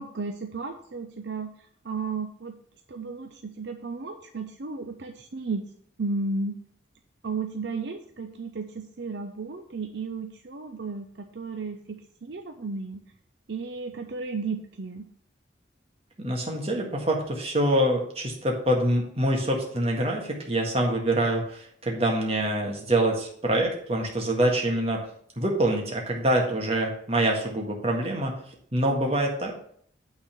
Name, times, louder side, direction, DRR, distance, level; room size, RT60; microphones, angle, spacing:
voice 1, 0.0-1.5 1.8-2.5 2.9-5.6 6.0-6.6 7.2-13.0 13.5-15.0, right 4 dB, 65° right, 5 dB, 0.6 m, -34 dB
voice 2, 16.2-25.0 25.4-28.3 28.7-29.5, right 1 dB, 30° right, 0 dB, 1.7 m, -25 dB
8.9 x 4.2 x 6.9 m, 0.62 s
head